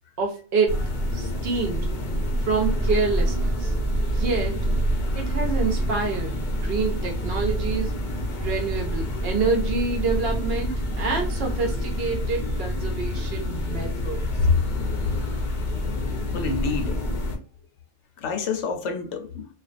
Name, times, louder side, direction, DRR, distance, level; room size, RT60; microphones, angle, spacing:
voice 1, 0.2-0.8 1.1-1.9 2.4-3.7 4.1-4.6 5.1-8.0 8.4-14.2, right 4 dB, 60° right, 0.7 m, -27 dB
sound 1, 0.7-17.4, equal, 50° left, 0.6 m, -27 dB
voice 2, 16.3-17.0 18.2-19.5, left 4 dB, 75° left, 0.9 m, -26 dB
2.4 x 2.2 x 2.4 m
omnidirectional pair, 1.2 m